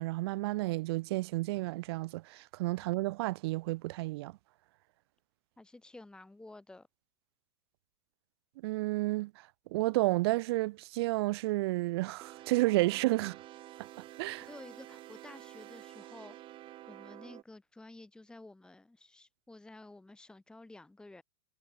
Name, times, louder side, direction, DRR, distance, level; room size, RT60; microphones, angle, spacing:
voice 1, 0.0-4.3 8.6-9.5 9.7-13.4 13.8-13.9 14.2-14.5, right 20 dB, 55° right, 1.6 m, -31 dB
voice 2, 5.6-6.9 14.4-16.4 16.9-21.2, left 2 dB, 5° left, 2.0 m, -52 dB
sound 1, 12.2-17.4, right 14 dB, 35° right, 3.0 m, -50 dB
hypercardioid pair, 120°, 16 cm